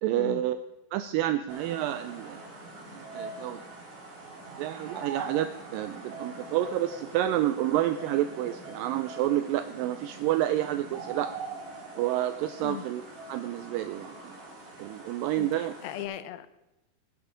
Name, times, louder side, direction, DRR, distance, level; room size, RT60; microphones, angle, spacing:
voice 1, 0.0-0.6 0.9-2.4 2.9-3.6 4.6-11.3 12.0-13.0 13.3-14.4 14.8-15.7, right 13 dB, 80° right, 10 dB, 2.1 m, -29 dB
sound 1, 1.5-16.0, right 3 dB, 65° right, 5.4 m, -43 dB
voice 2, 15.4-16.6, left 12 dB, 85° left, 13 dB, 2.5 m, -38 dB
20.5 x 7.3 x 5.0 m, 1.0 s
omnidirectional pair, 4.2 m